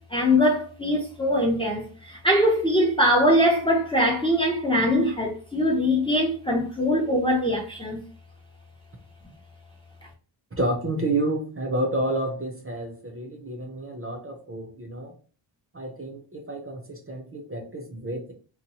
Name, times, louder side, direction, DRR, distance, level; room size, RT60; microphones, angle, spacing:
voice 1, 0.1-8.0, equal, 10° left, 0.6 m, -22 dB
voice 2, 10.6-15.1 15.7-18.3, right 1 dB, 30° right, 0.6 m, -30 dB
2.9 x 2.1 x 2.9 m
wide cardioid pair, 100°, 46 cm